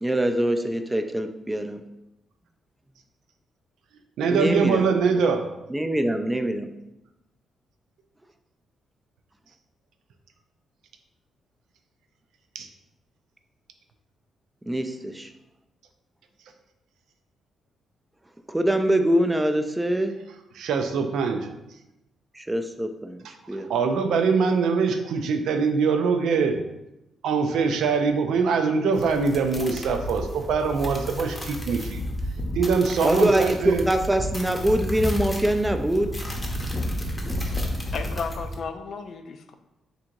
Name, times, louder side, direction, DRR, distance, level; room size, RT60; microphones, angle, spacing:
voice 1, 0.0-1.8 4.3-4.9 5.7-6.7 14.7-15.3 18.5-20.2 22.3-23.2 23.5-23.7 33.0-36.2, right 1 dB, 10° right, 7 dB, 0.4 m, -24 dB
voice 2, 4.2-5.5 12.5-12.7 20.6-21.5 23.6-26.6 27.2-32.0 32.6-33.9, right 5 dB, 85° right, 6 dB, 0.4 m, -23 dB
sound 1, 28.9-38.5, left 1 dB, 15° left, 0.7 m, -31 dB
voice 3, 37.9-39.5, left 5 dB, 65° left, 7 dB, 0.4 m, -33 dB
3.6 x 2.6 x 4.4 m, 0.91 s
cardioid pair, 100°, 0 cm